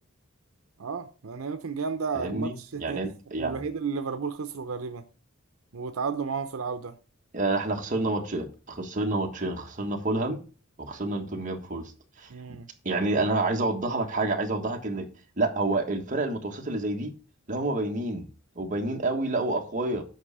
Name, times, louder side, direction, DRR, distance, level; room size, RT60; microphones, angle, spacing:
voice 1, 0.8-3.0 3.4-5.0 5.7-6.9 12.3-12.7, right 5 dB, 80° right, 0.7 m, -32 dB
voice 2, 2.1-3.6 7.3-10.4 10.8-11.9 12.2-12.6 12.8-15.1 15.4-17.1 17.5-18.3 18.5-20.0, right 2 dB, 40° right, 1.4 m, -28 dB
8.2 x 5.5 x 4.9 m
head